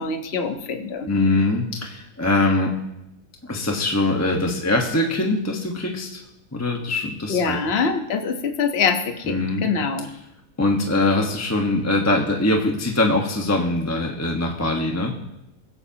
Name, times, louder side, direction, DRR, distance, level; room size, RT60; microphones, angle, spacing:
voice 1, 0.0-1.1 7.3-10.1, left 5 dB, 40° left, 4 dB, 1.3 m, -24 dB
voice 2, 1.1-2.7 3.4-6.2 6.5-7.6 9.3-9.7 10.6-15.1, left 2 dB, 10° left, 0 dB, 1.2 m, -22 dB
23.5 x 15.0 x 2.9 m, 0.87 s
omnidirectional pair, 1.8 m